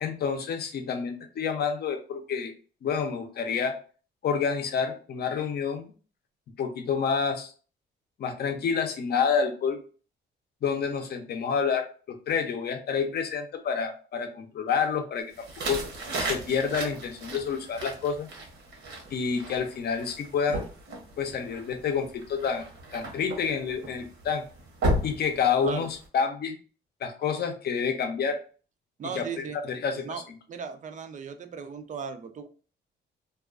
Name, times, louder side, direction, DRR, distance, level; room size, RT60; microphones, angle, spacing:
voice 1, 0.0-2.5 2.8-3.7 4.2-5.9 6.6-7.5 8.2-9.8 10.6-15.3 15.7-15.8 16.2-18.3 19.1-20.6 21.2-22.6 22.9-24.4 25.0-26.6 27.0-28.4 29.2-30.1, left 6 dB, 55° left, 6 dB, 0.6 m, -28 dB
sound 1, 15.3-26.1, right 1 dB, 70° right, 0.9 m, -35 dB
voice 2, 29.0-29.6 30.0-30.2 30.5-32.5, right 6 dB, 40° right, 8 dB, 0.4 m, -36 dB
2.3 x 2.3 x 2.4 m, 0.38 s
cardioid pair, 90°, 20 cm